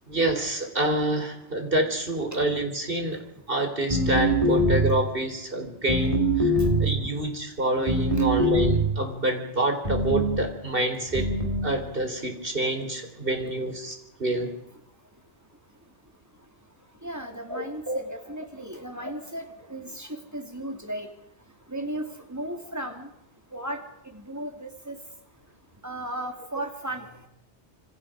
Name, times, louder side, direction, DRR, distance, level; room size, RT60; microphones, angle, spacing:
voice 1, 0.1-3.2 3.5-6.5 6.8-11.3 11.6-14.5 17.5-18.0 19.0-19.1, right 1 dB, 55° right, 6 dB, 4.0 m, -27 dB
sound 1, 3.9-5.0 5.9-7.0 7.9-9.0 9.8-10.4 11.1-11.7, right 1 dB, 30° right, 4.2 m, -23 dB
voice 2, 17.0-21.1 21.7-23.1 23.5-25.0 25.8-27.1, right 1 dB, 15° right, 5 dB, 3.0 m, -35 dB
27.0 x 25.0 x 5.1 m, 0.80 s
omnidirectional pair, 1.2 m